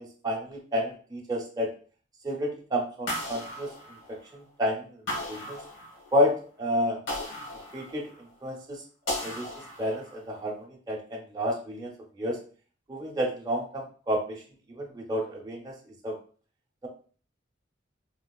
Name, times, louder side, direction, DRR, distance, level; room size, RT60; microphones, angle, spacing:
voice 1, 0.0-1.7 2.2-3.7 4.1-5.0 5.3-5.6 6.1-7.0 7.7-8.1 8.4-9.5 9.8-12.4 12.9-14.4 14.7-15.7 16.0-16.2, equal, 20° right, -2 dB, 0.6 m, -30 dB
sound 1, 3.1-4.4 5.1-6.2 7.1-8.3 9.1-10.2, left 1 dB, 90° left, 1.1 m, -36 dB
3.8 x 2.4 x 2.3 m, 0.42 s
head